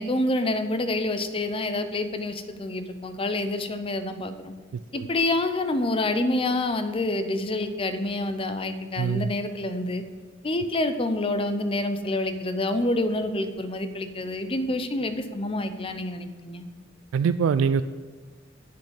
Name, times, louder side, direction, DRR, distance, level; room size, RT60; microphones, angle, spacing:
voice 1, 0.0-4.5 4.9-10.0 10.4-16.6, left 2 dB, 30° left, 9 dB, 0.6 m, -27 dB
voice 2, 9.0-9.3 17.1-17.8, right 6 dB, 90° right, 13 dB, 0.3 m, -23 dB
7.7 x 7.1 x 6.4 m, 1.4 s
head